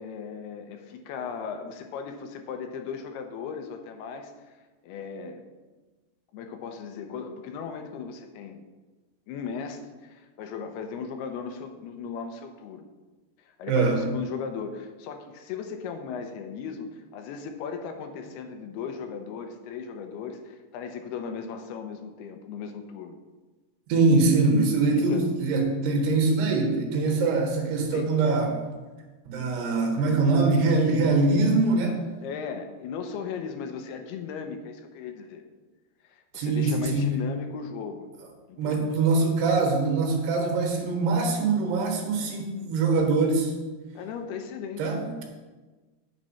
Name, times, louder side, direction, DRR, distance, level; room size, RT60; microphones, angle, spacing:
voice 1, 0.0-4.6 4.8-5.4 6.3-8.6 9.3-12.9 13.4-23.2 25.1-25.3 27.9-28.1 32.2-35.4 36.0-38.0 38.5-38.9 43.9-45.0, left 6 dB, 80° left, 6 dB, 2.8 m, -37 dB
voice 2, 13.7-14.1 23.9-28.6 29.3-32.1 36.4-37.2 38.6-43.5 44.8-45.2, right 3 dB, 80° right, 2 dB, 3.5 m, -23 dB
9.2 x 7.5 x 5.6 m, 1.3 s
omnidirectional pair, 4.7 m